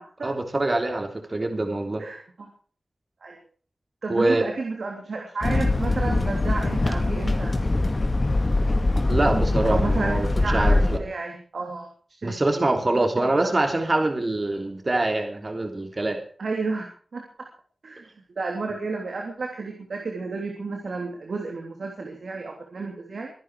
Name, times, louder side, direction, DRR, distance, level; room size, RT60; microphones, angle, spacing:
voice 1, 0.2-2.0 4.1-4.5 9.1-11.0 12.2-16.2, right 2 dB, 40° right, 5 dB, 3.3 m, -24 dB
voice 2, 2.0-2.5 3.2-3.4 4.0-7.5 9.7-11.9 12.2-12.7 13.4-13.5 16.4-17.5 17.8-18.1 18.4-23.3, right 3 dB, 80° right, 1 dB, 3.2 m, -32 dB
sound 1, 5.4-11.0, left 2 dB, 45° left, 2.6 m, -22 dB
24.0 x 11.0 x 4.9 m, 0.43 s
wide cardioid pair, 60°, 0 cm